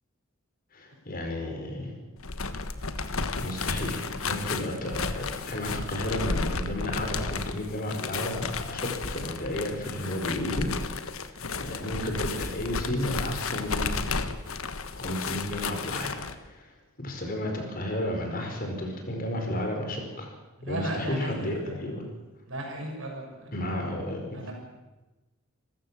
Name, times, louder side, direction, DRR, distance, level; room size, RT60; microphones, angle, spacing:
voice 1, 0.7-1.9 3.4-13.9 14.9-16.7 17.0-20.3 20.7-22.0 23.5-24.5, left 1 dB, 40° left, 3 dB, 4.8 m, -33 dB
sound 1, 2.2-16.3, left 4 dB, 80° left, 1.4 m, -33 dB
voice 2, 20.6-21.8 22.5-23.5 24.3-24.5, right 1 dB, 65° right, 1 dB, 6.8 m, -35 dB
27.0 x 15.0 x 7.4 m, 1.1 s
head